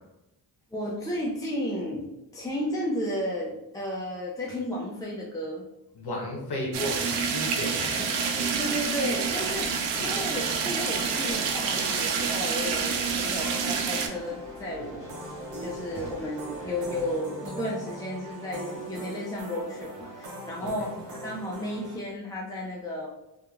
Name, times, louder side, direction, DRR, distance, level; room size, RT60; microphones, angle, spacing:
voice 1, 0.7-5.6 8.6-15.1 15.6-23.1, equal, 10° left, -3 dB, 0.4 m, -33 dB
voice 2, 6.0-8.2 14.8-14.9 20.6-20.7, left 1 dB, 55° left, -1 dB, 0.9 m, -34 dB
sound 1, 6.7-14.1, right 6 dB, 85° right, 0.5 m, -28 dB
sound 2, 8.2-22.0, right 1 dB, 70° right, 0.9 m, -41 dB
sound 3, 8.5-17.2, left 1 dB, 35° left, 1.3 m, -45 dB
2.8 x 2.5 x 2.3 m, 0.93 s
supercardioid pair, 65°, 46 cm